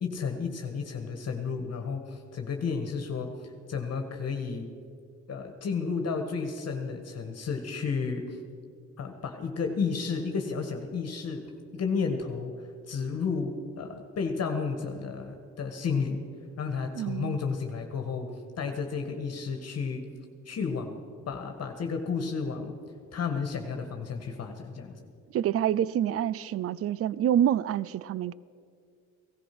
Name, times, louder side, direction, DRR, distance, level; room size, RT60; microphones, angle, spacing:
voice 1, 0.0-3.3 3.7-4.7 5.3-8.4 9.0-11.4 11.7-12.5 12.9-16.2 16.6-18.3 18.6-20.0 20.4-21.0 21.3-22.7 23.1-24.9, left 5 dB, 55° left, 1.7 m, -32 dB
voice 2, 16.9-17.4 25.3-28.3, right 10 dB, 50° right, 0.5 m, -27 dB
17.0 x 14.0 x 6.0 m
cardioid pair, 90°, 30 cm